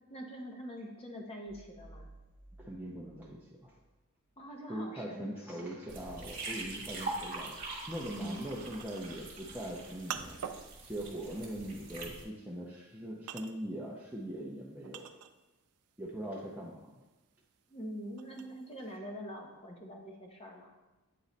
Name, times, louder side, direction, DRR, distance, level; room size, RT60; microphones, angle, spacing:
voice 1, 0.1-2.1 4.4-5.8 8.1-8.5 17.7-20.7, equal, 25° left, 1 dB, 0.8 m, -44 dB
sound 1, 1.5-4.1, right 2 dB, 10° left, 1.3 m, -56 dB
voice 2, 2.6-3.7 4.7-7.5 7.9-10.4 10.8-15.1 16.0-16.9, right 1 dB, 10° right, -5 dB, 0.6 m, -41 dB
sound 2, 5.9-12.2, right 2 dB, 40° right, 1.2 m, -43 dB
sound 3, 8.8-15.7 16.0-18.9, right 8 dB, 90° right, 0.4 m, -46 dB
8.4 x 3.1 x 4.0 m, 1.1 s
head